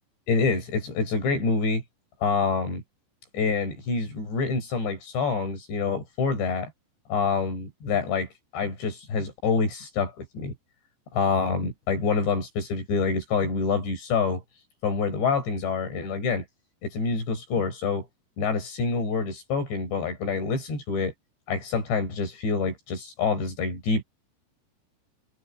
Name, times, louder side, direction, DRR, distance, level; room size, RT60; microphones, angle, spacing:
voice 1, 0.3-1.8 2.2-2.8 3.3-6.7 7.1-10.5 11.1-14.4 14.8-16.5 16.8-18.1 18.4-21.1 21.5-24.0, left 4 dB, 90° left, 9.6 m, -26 dB
omnidirectional pair, 4.9 m